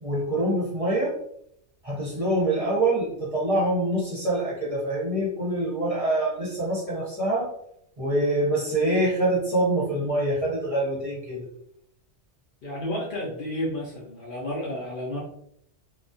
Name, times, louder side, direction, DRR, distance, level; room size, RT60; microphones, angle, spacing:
voice 1, 0.0-1.1 1.8-7.5 8.0-11.4, right 1 dB, 35° right, -6 dB, 0.7 m, -25 dB
voice 2, 12.6-15.2, left 1 dB, 60° left, -3 dB, 0.6 m, -31 dB
2.2 x 2.1 x 2.6 m, 0.73 s
omnidirectional pair, 1.2 m